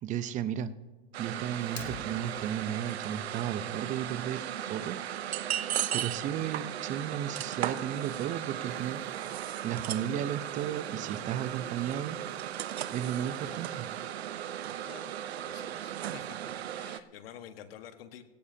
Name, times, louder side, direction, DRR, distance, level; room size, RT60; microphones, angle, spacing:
voice 1, 0.0-0.7 1.2-5.4 5.9-9.2 9.6-12.2 12.9-13.9, right 10 dB, 25° right, 14 dB, 0.7 m, -34 dB
sound 1, 1.1-17.0, right 11 dB, 80° right, 0.8 m, -36 dB
Fire, 1.6-2.6, left 5 dB, 80° left, 2.5 m, -44 dB
sound 2, 6.9-14.0, right 9 dB, 50° right, 1.7 m, -59 dB
voice 2, 15.4-16.4 16.6-18.2, left 10 dB, 65° left, 8 dB, 1.5 m, -49 dB
17.0 x 16.0 x 2.8 m, 1.2 s
hypercardioid pair, 130°, 31 cm